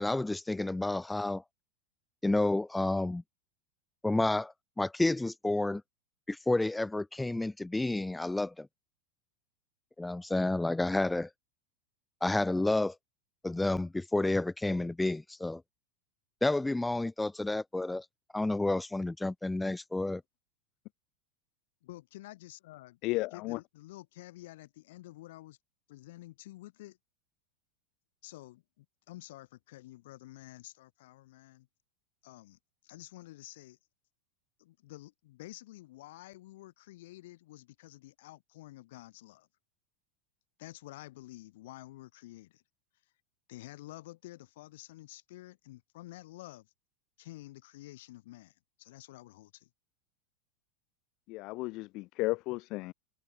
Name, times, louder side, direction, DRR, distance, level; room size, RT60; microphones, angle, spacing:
voice 1, 0.0-1.4 2.2-3.2 4.0-5.8 6.3-8.7 10.0-11.3 12.2-12.9 13.4-15.6 16.4-18.1 18.3-20.2, left 2 dB, 10° left, 1.0 m, -30 dB
voice 2, 21.8-23.0 23.3-25.6 25.9-27.0 28.2-31.7 32.2-33.8 34.6-39.5 40.6-42.6 43.5-46.7 47.2-49.7, left 17 dB, 65° left, 3.9 m, -50 dB
voice 3, 23.0-23.6 51.3-52.9, left 22 dB, 50° left, 2.7 m, -33 dB
hypercardioid pair, 90°, 0 cm